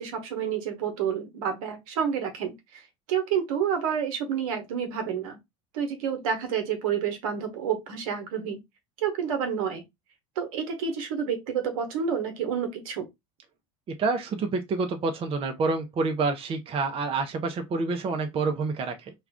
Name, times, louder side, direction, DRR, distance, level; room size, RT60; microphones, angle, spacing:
voice 1, 0.0-2.8 3.1-5.4 5.7-8.6 9.0-9.8 10.4-13.1, right 7 dB, 75° right, 1.0 m, -29 dB
voice 2, 13.9-19.1, right 3 dB, 30° right, 0.5 m, -28 dB
2.4 x 2.3 x 3.4 m
hypercardioid pair, 90°, 18 cm